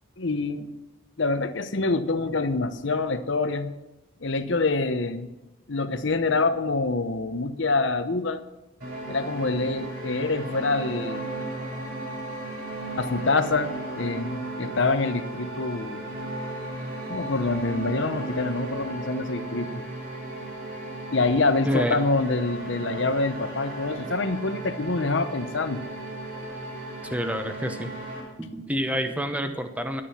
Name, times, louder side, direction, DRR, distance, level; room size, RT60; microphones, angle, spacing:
voice 1, 0.2-0.7 1.2-3.7 4.2-5.3 5.7-8.4 9.1-11.3 13.0-13.7 14.0-16.0 17.1-19.8 21.1-25.8, left 3 dB, 60° left, 10 dB, 0.8 m, -26 dB
sound 1, 8.8-28.2, right 2 dB, 50° right, 5.8 m, -35 dB
voice 2, 21.6-22.0 24.0-24.1 27.0-27.9 28.4-30.0, equal, 5° right, 7 dB, 0.8 m, -28 dB
12.0 x 9.9 x 5.7 m, 0.99 s
head